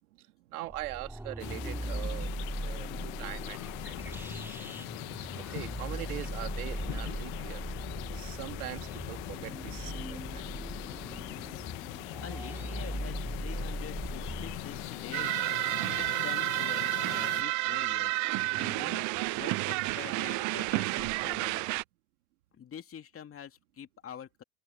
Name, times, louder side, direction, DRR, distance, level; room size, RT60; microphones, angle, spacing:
voice 1, 0.2-4.2 5.0-7.6 8.1-10.4, right 17 dB, 85° right, 2.6 m, -42 dB
sound 1, 0.7-16.1, right 1 dB, 5° right, 3.1 m, -39 dB
sound 2, 1.4-17.4, left 25 dB, 65° left, 1.4 m, -41 dB
voice 2, 12.2-15.4 15.9-18.2 18.6-19.1 19.3-21.7 22.5-24.4, left 8 dB, 30° left, 2.8 m, -46 dB
sound 3, 15.1-21.8, right 24 dB, 45° right, 0.5 m, -30 dB
open air
supercardioid pair, 105°, 43 cm